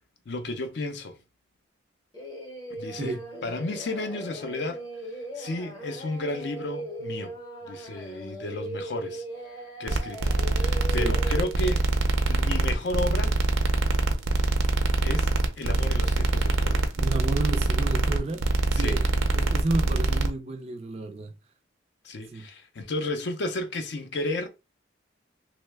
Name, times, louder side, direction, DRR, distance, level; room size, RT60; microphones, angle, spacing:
voice 1, 0.3-1.2 2.7-4.8 5.3-7.4 7.6-9.2 9.8-11.9 12.2-13.4 15.0-15.3 15.6-16.9 18.7-19.0 22.0-24.5, left 2 dB, 55° left, 0.5 m, -33 dB
Singing, 2.1-11.6, right 1 dB, 20° left, 0.7 m, -39 dB
sound 1, 9.9-20.3, right 2 dB, 85° right, 0.5 m, -24 dB
voice 2, 17.0-18.4 18.7-21.3 22.3-22.5, right 2 dB, 30° right, 0.3 m, -32 dB
3.0 x 2.1 x 3.2 m
head